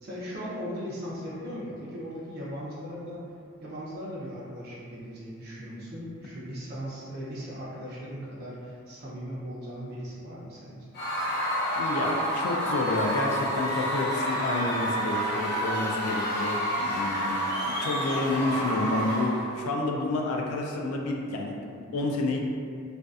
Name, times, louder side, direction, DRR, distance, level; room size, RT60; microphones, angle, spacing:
voice 1, 0.0-3.2 3.6-10.9, equal, 45° right, -7 dB, 0.4 m, -38 dB
Screaming / Cheering / Crowd, 10.9-19.5, equal, 45° left, 0.7 m, -29 dB
voice 2, 11.8-22.4, left 2 dB, 75° left, 0 dB, 0.3 m, -30 dB
2.5 x 2.3 x 2.3 m, 2.3 s
head